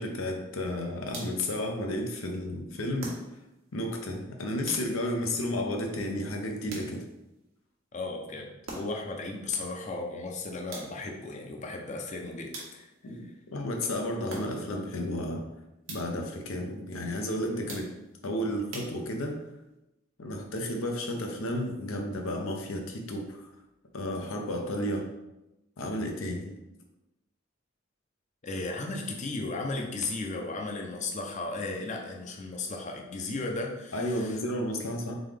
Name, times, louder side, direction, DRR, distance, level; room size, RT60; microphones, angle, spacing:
voice 1, 0.0-3.1 3.7-7.0 13.0-15.4 15.9-17.9 18.2-19.4 20.2-23.5 23.9-25.1 25.8-26.5 33.9-35.2, left 1 dB, 90° left, 2 dB, 0.7 m, -32 dB
sound 1, 1.1-1.6 3.0-3.6 4.7-5.2 6.7-7.3 8.7-9.2 10.7-11.2 12.5-13.1 14.3-14.8 15.9-16.3 17.7-18.2 18.7-19.4, right 2 dB, 85° right, 1.2 m, -43 dB
voice 2, 7.9-8.5 8.7-13.2 17.5-17.7 28.4-34.4 34.8-34.9, left 3 dB, 35° left, 1 dB, 0.6 m, -35 dB
3.8 x 3.6 x 3.4 m, 0.97 s
head